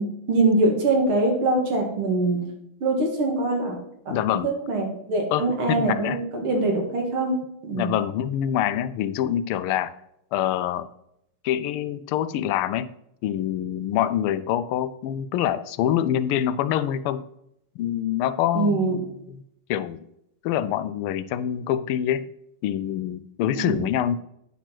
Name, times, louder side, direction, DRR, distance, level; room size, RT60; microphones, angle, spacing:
voice 1, 0.0-2.4 2.8-3.8 4.1-7.4 7.6-8.0 18.5-19.0 23.5-23.9, right 2 dB, 75° right, 0 dB, 2.8 m, -23 dB
voice 2, 4.1-4.5 5.3-6.2 7.7-10.0 10.3-10.9 11.4-12.9 13.2-17.3 17.8-19.0 19.3-19.4 19.7-20.0 20.4-22.3 22.6-24.2, left 11 dB, 85° left, 14 dB, 1.5 m, -25 dB
9.0 x 6.0 x 4.4 m, 0.77 s
omnidirectional pair, 2.4 m